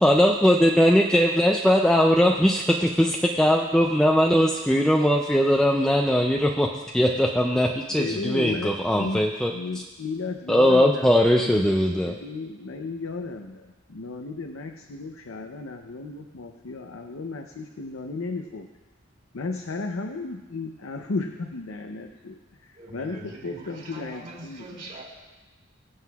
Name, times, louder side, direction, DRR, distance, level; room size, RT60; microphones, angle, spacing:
voice 1, 0.0-9.5 10.5-12.1, equal, 5° left, 0 dB, 0.3 m, -20 dB
voice 2, 7.6-18.7 19.3-24.8, left 3 dB, 90° left, 4 dB, 0.7 m, -34 dB
voice 3, 22.7-25.0, right 2 dB, 45° right, -4 dB, 4.1 m, -42 dB
22.5 x 7.6 x 2.4 m, 1.2 s
head